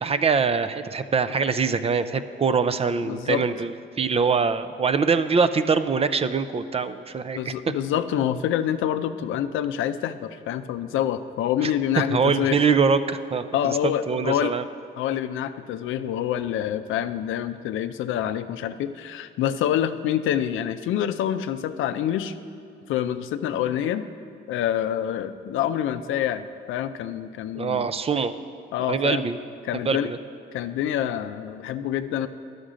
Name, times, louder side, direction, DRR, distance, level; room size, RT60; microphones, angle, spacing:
voice 1, 0.0-7.5 11.6-11.7 12.1-14.6 27.6-28.3 28.9-29.4 29.9-30.2, right 5 dB, 30° right, 11 dB, 0.4 m, -23 dB
voice 2, 3.0-3.5 7.4-12.7 13.5-14.5 15.0-22.3 22.9-24.1 24.5-27.9 28.7-29.3 29.6-30.1 30.5-32.3, left 10 dB, 85° left, 10 dB, 0.5 m, -26 dB
11.5 x 6.5 x 5.0 m, 2.3 s
cardioid pair, 90°, 20 cm